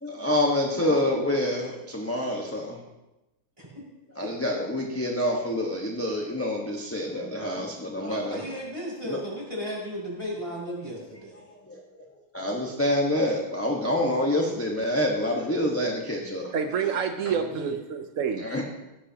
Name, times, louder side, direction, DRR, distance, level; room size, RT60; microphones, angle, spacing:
voice 1, 0.0-2.8 4.1-8.5 9.0-9.2 11.5-12.1 12.3-16.5 17.2-17.3 18.4-18.6, left 1 dB, 10° left, -2 dB, 1.0 m, -27 dB
voice 2, 8.0-11.4 17.3-17.7, equal, 10° right, -5 dB, 5.5 m, -35 dB
voice 3, 16.5-18.5, right 7 dB, 75° right, 6 dB, 0.7 m, -28 dB
16.5 x 15.0 x 2.9 m, 0.98 s
omnidirectional pair, 2.3 m